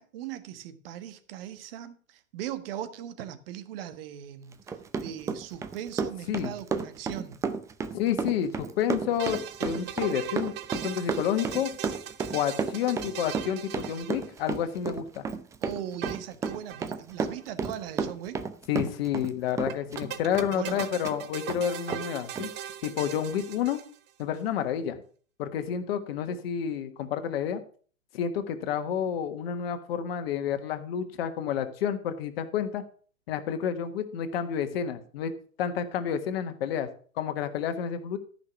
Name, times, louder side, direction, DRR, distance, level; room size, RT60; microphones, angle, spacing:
voice 1, 0.0-4.6 4.9-7.4 12.9-13.0 15.6-18.4 20.5-20.8, right 10 dB, 45° right, 1.4 m, -39 dB
Run, 4.5-19.3 19.6-21.2 21.5-21.6 21.9-22.1 22.4-22.5, right 5 dB, 10° right, 0.5 m, -32 dB
voice 2, 7.9-10.5 10.8-11.7 12.3-15.2 18.7-22.5 22.8-23.8 24.2-25.0 25.4-27.6 28.1-32.8 33.3-35.3 35.6-36.9 37.2-38.2, left 9 dB, 50° left, 1.6 m, -30 dB
sound 1, 8.9-14.7 16.0-16.9 17.1-17.2 17.4-17.5 19.7-24.2, right 10 dB, 25° right, 1.0 m, -39 dB
14.0 x 5.9 x 5.8 m
figure-of-eight pair, 100°, 39 cm